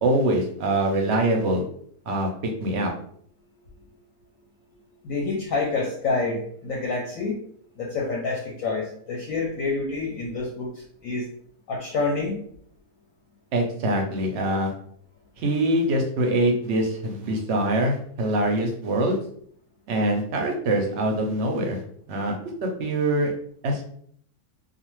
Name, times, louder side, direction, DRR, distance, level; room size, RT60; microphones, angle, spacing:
voice 1, 0.0-1.6 2.1-2.9 13.5-14.7 15.4-19.2 19.9-21.8 22.1-22.4 22.6-23.3 23.6-23.9, right 1 dB, 60° right, 2 dB, 0.7 m, -24 dB
voice 2, 5.0-7.4 7.8-10.7 11.0-11.2 11.7-12.4, left 3 dB, 70° left, -2 dB, 0.9 m, -27 dB
2.4 x 2.4 x 3.0 m, 0.62 s
omnidirectional pair, 1.6 m